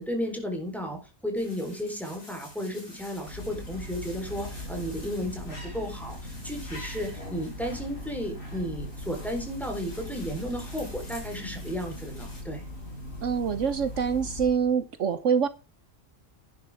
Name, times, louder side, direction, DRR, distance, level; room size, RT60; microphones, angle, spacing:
voice 1, 0.0-12.6, equal, ahead, 4.0 m, -34 dB
sound 1, 1.4-12.4, left 1 dB, 60° left, 5.8 m, -51 dB
sound 2, 3.0-14.8, left 1 dB, 80° left, 4.9 m, -40 dB
sound 3, 4.2-10.7, left 2 dB, 40° left, 7.9 m, -52 dB
voice 2, 13.2-15.5, right 7 dB, 70° right, 1.2 m, -25 dB
11.5 x 10.5 x 3.6 m
omnidirectional pair, 1.4 m